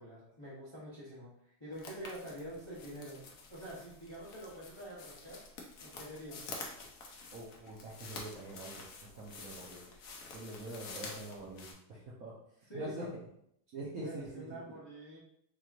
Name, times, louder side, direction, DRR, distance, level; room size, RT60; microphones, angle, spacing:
voice 1, 0.0-5.4 5.8-6.4 12.7-13.1 14.0-15.2, equal, 25° left, -8 dB, 0.6 m, -46 dB
sound 1, 1.7-11.7, left 3 dB, 80° left, 0.7 m, -49 dB
voice 2, 7.3-9.8 10.3-12.3 12.7-13.0 13.7-14.6, right 2 dB, 60° right, -7 dB, 0.9 m, -45 dB
4.7 x 2.9 x 2.4 m, 0.73 s
omnidirectional pair, 2.3 m